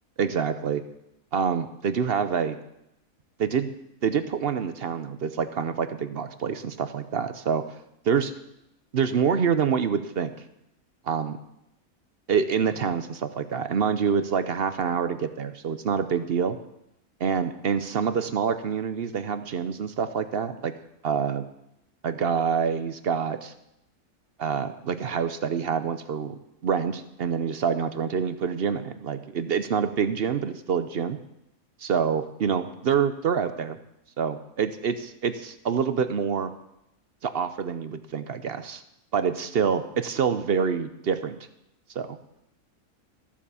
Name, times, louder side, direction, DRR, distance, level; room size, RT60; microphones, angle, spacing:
voice 1, 0.2-0.8 1.3-2.6 3.4-3.7 4.0-7.6 8.0-8.3 8.9-10.3 11.0-11.4 12.3-16.6 17.2-20.7 21.0-21.4 22.0-23.5 24.4-31.2 31.8-33.8 34.2-34.9 35.2-36.5 37.2-38.8 39.1-41.4 41.9-42.2, right 6 dB, 55° right, 11 dB, 0.7 m, -26 dB
14.5 x 7.5 x 6.9 m, 0.84 s
omnidirectional pair, 1.6 m